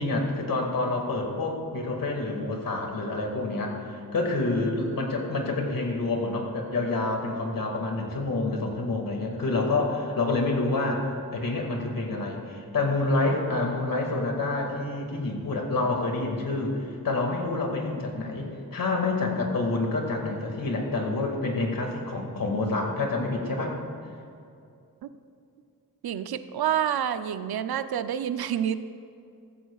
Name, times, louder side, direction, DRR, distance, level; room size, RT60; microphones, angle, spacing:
voice 1, 0.0-23.8, left 2 dB, 65° left, 1 dB, 2.1 m, -28 dB
voice 2, 26.0-28.8, right 9 dB, 85° right, 11 dB, 0.6 m, -28 dB
15.0 x 14.0 x 2.4 m, 2.5 s
wide cardioid pair, 95°, 37 cm